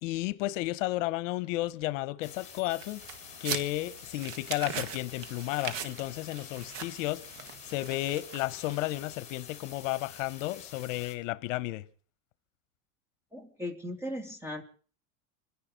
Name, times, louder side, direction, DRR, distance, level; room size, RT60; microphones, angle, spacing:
voice 1, 0.0-3.0 3.4-11.8, left 17 dB, 70° left, 0.9 m, -33 dB
sound 1, 2.2-11.2, left 7 dB, 15° left, 4.6 m, -48 dB
sound 2, 2.7-9.0, right 9 dB, 75° right, 1.8 m, -41 dB
voice 2, 13.3-14.6, left 1 dB, 5° right, 2.6 m, -37 dB
26.5 x 10.5 x 5.1 m
supercardioid pair, 150°, 39 cm